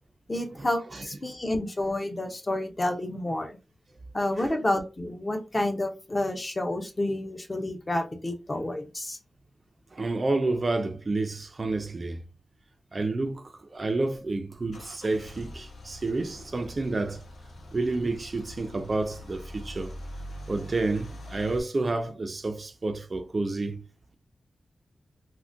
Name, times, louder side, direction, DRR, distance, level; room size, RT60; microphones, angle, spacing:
voice 1, 0.3-3.6 4.1-9.2, left 1 dB, 25° left, 0.5 m, -29 dB
voice 2, 9.9-12.2 12.9-17.2 17.7-19.9 20.5-23.8, right 2 dB, 35° right, 0.4 m, -29 dB
Car / Engine starting / Idling, 13.8-21.6, equal, 90° left, 0.8 m, -44 dB
3.5 x 2.1 x 2.5 m
wide cardioid pair, 135°, 0 cm